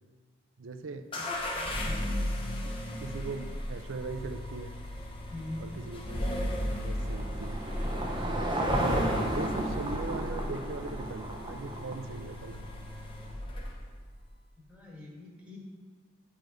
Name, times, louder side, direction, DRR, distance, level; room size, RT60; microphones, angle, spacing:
voice 1, 0.6-1.1 2.6-4.8 5.6-7.6 8.8-12.7, right 4 dB, 70° right, 9 dB, 0.5 m, -40 dB
sound 1, 1.1-14.0, left 1 dB, 25° left, 0.9 m, -35 dB
voice 2, 5.3-5.7 14.7-15.6, left 1 dB, 5° right, -4 dB, 1.4 m, -42 dB
Car passing by / Engine, 6.1-12.6, right 1 dB, 20° right, 0.6 m, -34 dB
9.0 x 5.0 x 3.9 m, 1.5 s
head